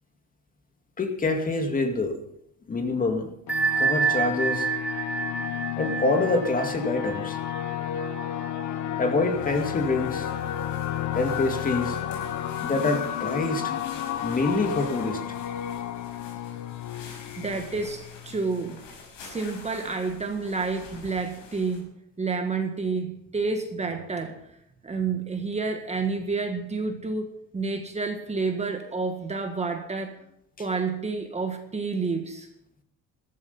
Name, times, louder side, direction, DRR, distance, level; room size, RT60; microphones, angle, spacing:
voice 1, 1.0-2.2 2.7-3.3 3.8-4.7 5.8-7.4 9.0-10.3 11.1-12.0 12.6-13.7 14.2-15.2, left 2 dB, 25° left, 5 dB, 2.3 m, -26 dB
sound 1, 3.5-18.8, left 10 dB, 60° left, 1.3 m, -32 dB
Bell, 3.5-8.9, right 6 dB, 5° right, 2.4 m, -29 dB
sound 2, 9.3-21.8, left 4 dB, 85° left, 5.8 m, -48 dB
voice 2, 17.4-18.8 19.2-21.9 22.2-24.4 24.8-30.2 30.6-32.5, right 4 dB, 20° right, 5 dB, 1.7 m, -29 dB
14.0 x 13.5 x 5.6 m, 0.76 s
cardioid pair, 125°, 33 cm